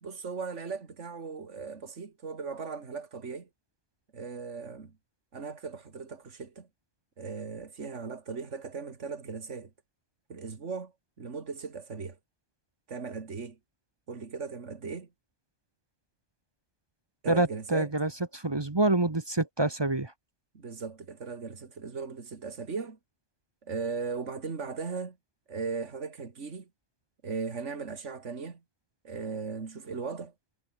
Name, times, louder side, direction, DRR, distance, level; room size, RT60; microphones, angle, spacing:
voice 1, 0.0-3.5 4.1-4.9 5.3-6.7 7.2-9.7 10.3-10.9 11.2-12.2 12.9-13.6 14.1-15.1 17.2-17.9 20.5-23.0 23.6-25.2 25.5-26.7 27.2-28.6 29.0-30.3, right 5 dB, 65° right, 2.5 m, -38 dB
voice 2, 17.3-20.1, right 2 dB, 20° right, 1.0 m, -27 dB
omnidirectional pair, 1.3 m